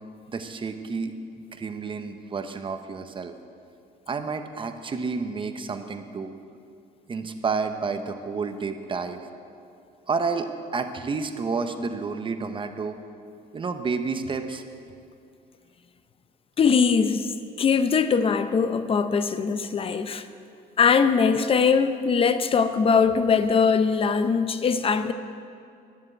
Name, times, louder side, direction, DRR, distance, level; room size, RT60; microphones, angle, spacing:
voice 1, 0.3-3.3 4.1-6.3 7.1-9.2 10.1-13.0 13.5-14.6, right 4 dB, 30° right, 7 dB, 0.9 m, -30 dB
voice 2, 16.6-17.3 17.6-20.2 20.8-25.1, left 5 dB, 35° left, 10 dB, 0.7 m, -21 dB
10.5 x 7.7 x 8.8 m, 2.4 s
cardioid pair, 110°, 17 cm